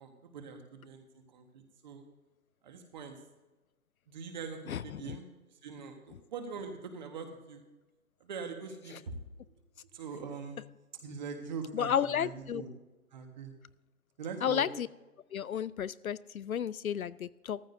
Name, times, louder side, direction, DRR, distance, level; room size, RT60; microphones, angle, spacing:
voice 1, 0.0-2.1 2.6-3.2 4.1-7.6 8.2-9.2 9.4-9.5 9.9-10.6 11.0-12.7 13.1-13.5 14.2-14.6, right 5 dB, 30° right, 5 dB, 1.5 m, -43 dB
voice 2, 4.7-5.1 11.7-12.6 14.4-14.9 15.3-17.6, left 9 dB, 70° left, 18 dB, 0.5 m, -32 dB
14.5 x 14.5 x 2.7 m, 1.1 s
hypercardioid pair, 155°, 45 cm